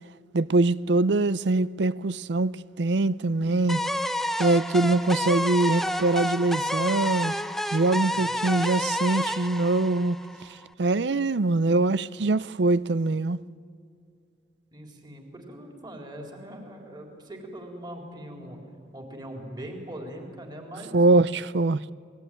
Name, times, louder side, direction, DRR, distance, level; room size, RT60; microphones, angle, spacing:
voice 1, 0.3-3.8 4.4-7.3 7.7-10.2 10.8-13.4 20.9-21.9, right 2 dB, 70° right, 0.6 m, -23 dB
sound 1, 3.7-10.6, left 1 dB, ahead, 0.7 m, -29 dB
voice 2, 14.7-18.6 18.9-21.0, right 1 dB, 25° right, 4.0 m, -41 dB
27.0 x 20.5 x 9.2 m
head